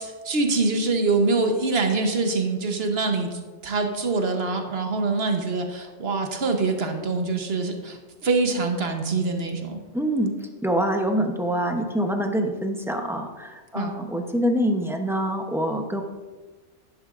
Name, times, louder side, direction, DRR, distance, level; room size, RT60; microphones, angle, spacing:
voice 1, 0.2-9.8 13.7-13.9, right 3 dB, 60° right, 4 dB, 1.2 m, -24 dB
voice 2, 9.9-10.3 10.6-16.0, equal, 5° right, 3 dB, 0.6 m, -25 dB
11.0 x 10.5 x 2.5 m, 1.3 s
omnidirectional pair, 1.2 m